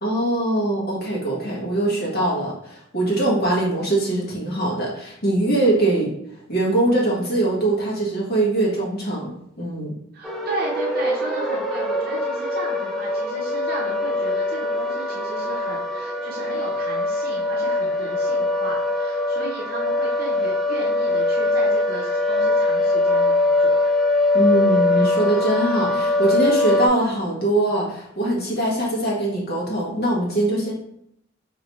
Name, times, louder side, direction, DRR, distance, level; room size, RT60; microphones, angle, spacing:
voice 1, 0.0-6.1 6.5-9.3 9.6-9.9 24.3-30.7, right 1 dB, 55° left, -4 dB, 1.5 m, -22 dB
voice 2, 10.1-23.8, right 1 dB, 50° right, -2 dB, 0.6 m, -34 dB
sound 1, 10.2-26.9, left 2 dB, ahead, 0.5 m, -22 dB
4.1 x 3.0 x 3.1 m, 0.75 s
head